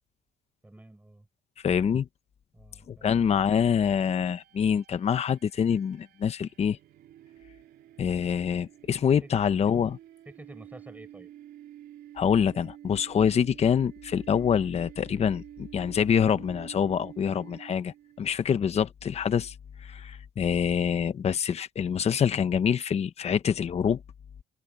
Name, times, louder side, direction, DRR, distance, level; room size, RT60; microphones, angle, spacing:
voice 1, 0.6-1.3 2.5-3.2 9.0-9.4 10.3-11.3, right 1 dB, 10° right, 7.2 m, -49 dB
voice 2, 1.6-2.1 2.9-6.8 8.0-10.0 12.2-19.5 19.8-24.0, left 7 dB, 40° left, 1.0 m, -26 dB
Pitched feedback with mid-harmonic drones, 3.8-18.3, right 12 dB, 65° right, 3.3 m, -50 dB
cardioid pair, 110°, 17 cm